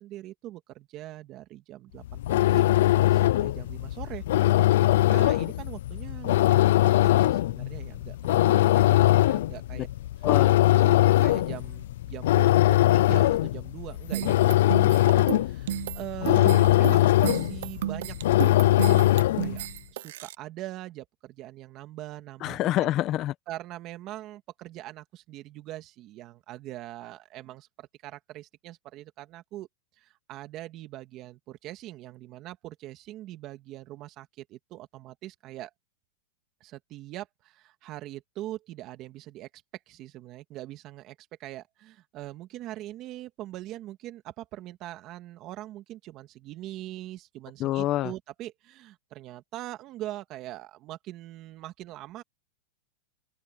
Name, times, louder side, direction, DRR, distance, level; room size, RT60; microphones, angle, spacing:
voice 1, 0.0-4.2 4.6-9.9 10.7-22.9 23.5-29.7 30.0-35.7 36.6-39.5 39.9-52.2, right 15 dB, 35° right, 2.3 m, -42 dB
sound 1, 2.0-19.6, left 15 dB, 70° left, 0.4 m, -22 dB
voice 2, 10.2-10.6 22.4-23.3 47.6-48.1, left 14 dB, 30° left, 0.9 m, -26 dB
sound 2, 14.1-20.3, right 13 dB, 65° right, 0.7 m, -32 dB
open air
supercardioid pair, 155°, 0 cm